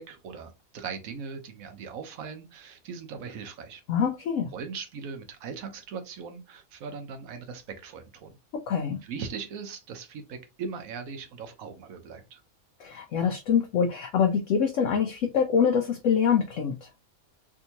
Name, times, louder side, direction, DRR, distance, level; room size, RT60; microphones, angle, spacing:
voice 1, 0.0-3.8 4.5-8.4 9.0-12.4, right 5 dB, 70° right, 1.1 m, -39 dB
voice 2, 3.9-4.5 8.7-9.0 12.8-16.9, left 7 dB, 65° left, 0.9 m, -25 dB
3.5 x 2.6 x 2.8 m
omnidirectional pair, 1.5 m